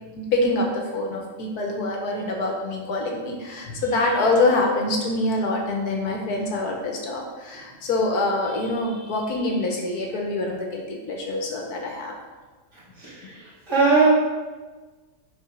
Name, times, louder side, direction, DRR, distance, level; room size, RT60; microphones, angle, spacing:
voice 1, 0.1-12.1, left 2 dB, 70° left, 1 dB, 1.5 m, -25 dB
voice 2, 13.0-14.1, right 4 dB, 45° right, -7 dB, 2.7 m, -20 dB
7.0 x 4.3 x 5.1 m, 1.3 s
omnidirectional pair, 1.7 m